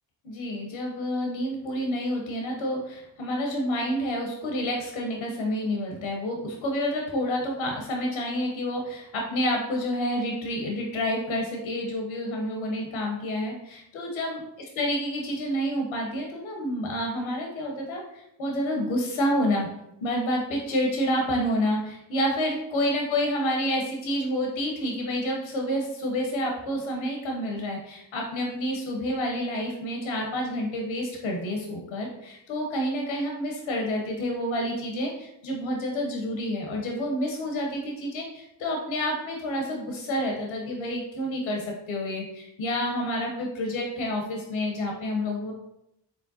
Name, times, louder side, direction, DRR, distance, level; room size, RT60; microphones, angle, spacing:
voice 1, 0.2-14.4 14.8-19.7 20.0-45.5, equal, 85° left, 0 dB, 0.9 m, -29 dB
4.9 x 3.4 x 2.7 m, 0.83 s
supercardioid pair, 55°, 50 cm